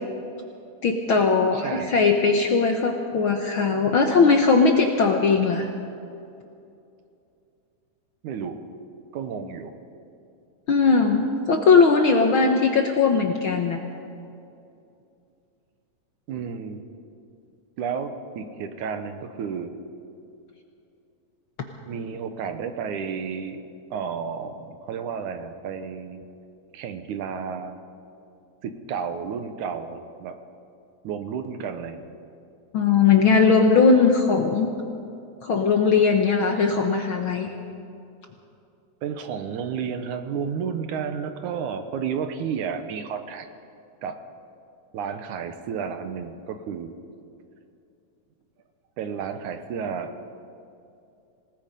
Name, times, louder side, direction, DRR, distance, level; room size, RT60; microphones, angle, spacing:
voice 1, 0.8-5.7 10.7-13.8 32.7-34.7 35.4-37.5, left 4 dB, 60° left, 3 dB, 1.4 m, -19 dB
voice 2, 1.5-2.0 8.2-8.7 9.1-9.7 16.3-16.8 17.8-19.7 21.9-23.6 23.9-26.3 26.7-27.8 28.6-30.4 31.0-32.1 39.0-43.5 44.0-44.2 44.9-46.9 49.0-50.1, right 6 dB, 75° right, 8 dB, 2.5 m, -32 dB
27.0 x 18.5 x 5.3 m, 2.6 s
omnidirectional pair, 3.6 m